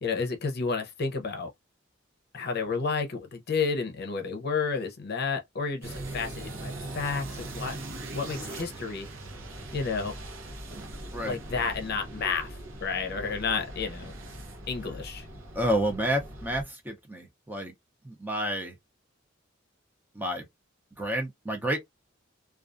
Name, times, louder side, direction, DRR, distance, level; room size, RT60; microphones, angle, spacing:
voice 1, 0.0-1.5 2.3-7.8 8.1-9.1 9.7-10.2 11.2-14.1 14.7-15.3, left 5 dB, 55° left, 0.6 m, -31 dB
sound 1, 5.8-16.6, right 1 dB, 70° right, 0.7 m, -40 dB
voice 2, 15.5-17.7 18.0-18.8 20.1-20.5 21.0-21.8, right 1 dB, 10° right, 0.6 m, -30 dB
2.3 x 2.3 x 2.5 m
head